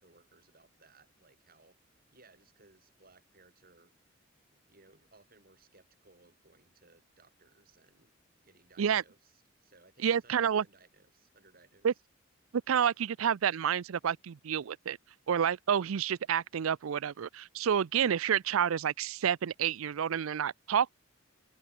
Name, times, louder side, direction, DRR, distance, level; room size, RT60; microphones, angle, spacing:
voice 1, 0.0-1.8 2.1-3.9 4.5-8.1 8.4-11.9, right 3 dB, 45° right, 5.8 m, -62 dB
voice 2, 10.0-10.6 11.8-11.9 12.7-15.0 15.3-20.9, right 8 dB, 75° right, 0.4 m, -29 dB
head